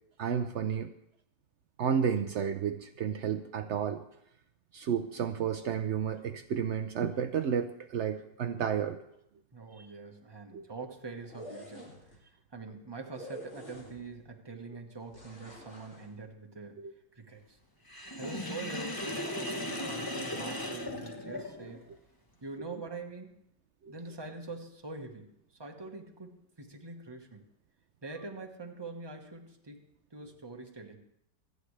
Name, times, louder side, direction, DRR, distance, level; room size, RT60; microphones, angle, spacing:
voice 1, 0.2-0.9 1.8-4.0 4.7-9.0 9.8-9.9 10.5-10.6 16.8-16.9 23.8-23.9, right 7 dB, 75° right, 7 dB, 0.6 m, -31 dB
voice 2, 9.5-12.0 12.2-16.8 17.1-17.6 18.2-21.9 22.4-23.4 23.9-25.3 25.6-27.5 28.0-31.0, right 3 dB, 15° right, 2 dB, 1.2 m, -44 dB
sound 1, 11.2-12.2 13.1-14.2 15.1-16.1, equal, 40° left, 2.8 m, -47 dB
Sink (filling or washing), 17.9-21.8, left 1 dB, 15° left, 0.9 m, -37 dB
26.0 x 9.5 x 3.3 m, 0.76 s
omnidirectional pair, 1.9 m